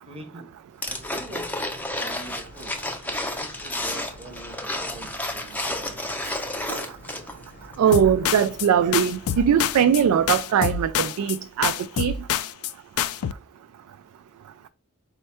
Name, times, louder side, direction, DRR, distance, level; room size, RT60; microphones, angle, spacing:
voice 1, 0.1-0.5 0.8-6.2, right 1 dB, 25° right, 0.7 m, -44 dB
sound 1, 0.8-7.4 7.7-7.8, left 1 dB, 5° left, 0.5 m, -31 dB
sound 2, 0.9-10.4, left 1 dB, 40° left, 0.7 m, -48 dB
voice 2, 7.8-11.7 12.0-12.1, right 8 dB, 80° right, 0.3 m, -21 dB
sound 3, 7.9-8.7 8.9-10.0 10.3-11.4 11.6-12.7 13.0-13.3, left 9 dB, 70° left, 0.3 m, -26 dB
4.4 x 2.2 x 4.2 m
head